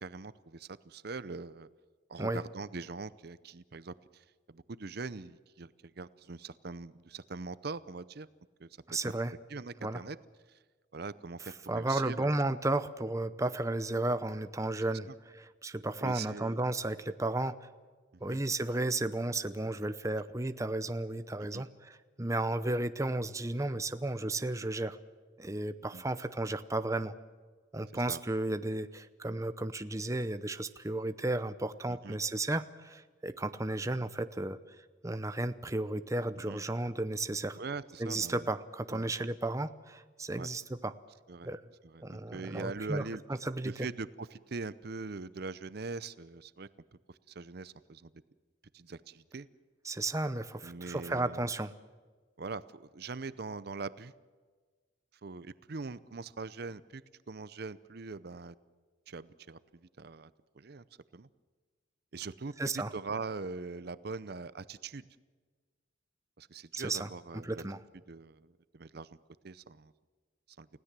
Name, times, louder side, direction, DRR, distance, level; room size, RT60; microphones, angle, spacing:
voice 1, 0.0-1.7 2.1-8.3 8.6-9.1 9.5-10.2 10.5-10.6 10.9-12.3 16.0-16.6 18.3-18.4 21.5-21.6 25.9-26.0 27.9-28.2 31.9-32.2 36.5-36.6 37.6-38.5 38.9-39.1 40.3-40.5 41.3-41.5 41.8-43.2 43.6-46.7 47.1-48.1 48.7-49.5 50.6-51.5 52.4-54.1 55.2-57.0 57.3-58.5 59.1-60.8 61.1-61.3 62.1-65.1 66.4-67.6 68.1-69.2 69.4-69.9 70.6-70.7, right 4 dB, 50° right, 15 dB, 0.6 m, -42 dB
voice 2, 8.9-9.3 9.8-10.0 11.7-15.1 15.3-17.7 18.2-25.0 25.4-27.1 27.7-34.6 35.0-37.6 38.0-40.9 41.4-41.6 42.0-43.0 43.4-43.9 49.8-51.7 62.6-62.9 66.7-67.1 67.4-67.8, right 2 dB, 15° right, 11 dB, 0.7 m, -33 dB
30.0 x 16.5 x 7.5 m, 1.5 s
head